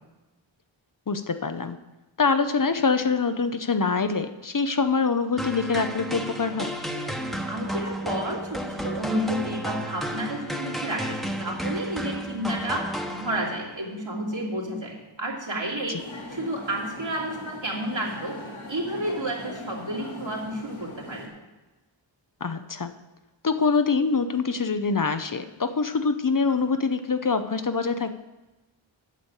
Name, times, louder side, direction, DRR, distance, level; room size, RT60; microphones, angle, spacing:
voice 1, 1.1-1.8 2.2-6.7 15.9-16.0 22.4-22.9 23.4-28.2, left 4 dB, 45° left, 9 dB, 0.7 m, -25 dB
sound 1, 5.4-13.7, equal, ahead, 1.1 m, -32 dB
voice 2, 7.5-16.0 16.3-18.4 18.7-21.3, right 1 dB, 70° right, -3 dB, 2.8 m, -31 dB
sound 2, 16.0-21.3, left 1 dB, 75° left, 2.2 m, -40 dB
9.1 x 6.8 x 7.2 m, 1.1 s
wide cardioid pair, 55°, 47 cm